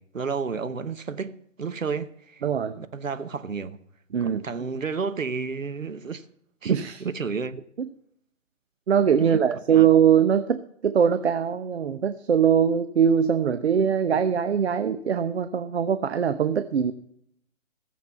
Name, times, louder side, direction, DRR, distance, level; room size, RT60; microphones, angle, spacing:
voice 1, 0.0-2.4 2.8-3.8 4.2-6.2 6.6-7.6 9.2-9.4 9.7-9.9, right 5 dB, 85° right, 1.0 m, -31 dB
voice 2, 2.4-2.8 4.1-4.4 6.6-7.0 7.8-7.9 8.9-16.9, right 8 dB, 55° right, 0.8 m, -22 dB
15.0 x 7.4 x 8.2 m
figure-of-eight pair, 140°, 38 cm